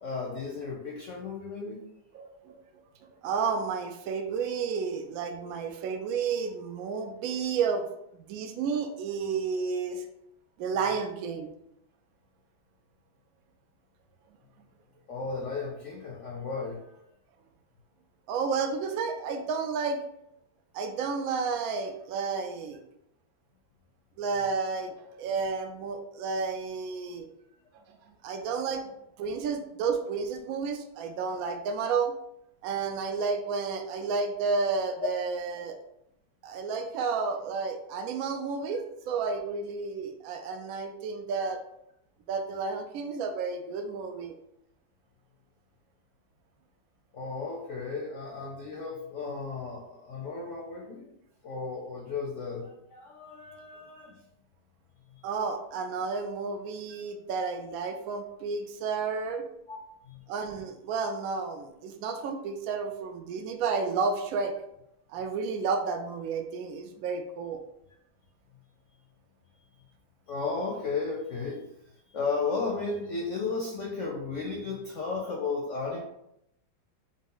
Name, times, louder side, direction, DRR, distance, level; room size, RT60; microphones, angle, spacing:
voice 1, 0.0-1.8 15.1-16.9 35.0-35.1 41.4-41.5 47.1-51.1 51.4-54.2 55.1-55.3 59.7-59.8 60.0-60.2 69.7-69.8 70.3-71.6 72.1-76.0, left 4 dB, 65° left, -1 dB, 0.8 m, -34 dB
voice 2, 2.1-2.6 3.2-7.9 8.3-10.0 10.6-11.5 18.3-20.0 20.7-22.8 24.2-27.3 27.9-32.1 32.6-35.8 36.4-41.6 42.3-44.3 55.2-59.4 60.3-64.5 65.1-67.6, right 5 dB, 90° right, 5 dB, 0.7 m, -31 dB
5.2 x 2.1 x 3.7 m, 0.79 s
omnidirectional pair, 2.1 m